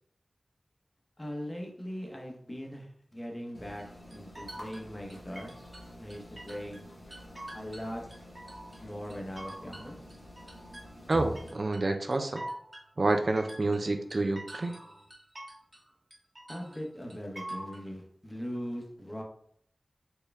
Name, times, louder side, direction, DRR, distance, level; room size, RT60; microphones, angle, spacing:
voice 1, 1.2-3.8 4.1-5.5 6.0-6.9 7.5-8.0 8.8-10.0 16.5-19.2, equal, 25° left, 0 dB, 0.9 m, -40 dB
sound 1, 3.5-11.5, equal, 60° left, 1.1 m, -47 dB
sound 2, 3.8-6.8 7.1-8.8 9.1-17.8, right 1 dB, 35° right, 1.0 m, -45 dB
voice 2, 11.1-12.4 13.0-14.8, right 2 dB, 55° right, 5 dB, 0.4 m, -28 dB
4.5 x 2.2 x 3.4 m, 0.64 s
wide cardioid pair, 55°, 0 cm